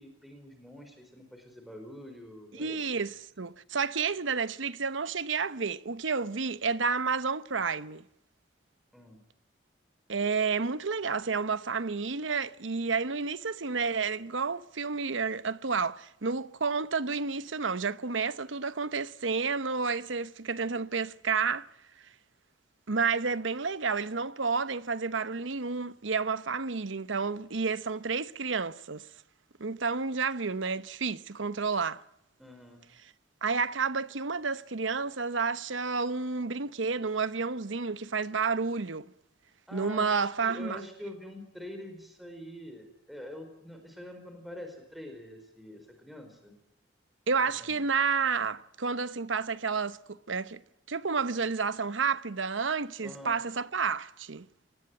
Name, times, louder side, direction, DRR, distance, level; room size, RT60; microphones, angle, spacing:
voice 1, 0.0-2.8 8.9-9.2 32.4-32.8 39.7-46.5 47.4-47.8 53.0-53.4, left 1 dB, ahead, 4.6 m, -45 dB
voice 2, 2.5-8.0 10.1-21.7 22.9-29.1 29.6-32.0 33.4-39.1 39.7-40.8 47.3-50.6 50.9-54.5, right 5 dB, 85° right, 1.0 m, -30 dB
25.5 x 20.0 x 9.2 m
head